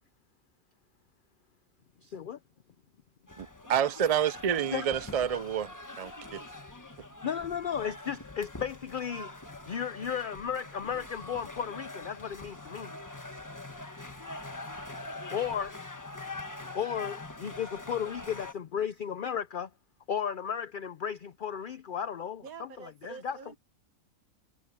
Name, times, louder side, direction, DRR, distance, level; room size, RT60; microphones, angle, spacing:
voice 1, 2.0-2.4 4.7-4.9 7.2-9.3 9.7-12.9 15.3-15.7 16.7-19.7 20.1-22.4 23.0-23.4, left 8 dB, 55° left, 0.6 m, -34 dB
sound 1, 3.3-18.5, left 2 dB, 15° left, 1.1 m, -43 dB
voice 2, 3.4-6.4, right 9 dB, 65° right, 0.3 m, -29 dB
voice 3, 22.4-23.6, right 6 dB, 85° right, 1.9 m, -46 dB
omnidirectional pair, 1.5 m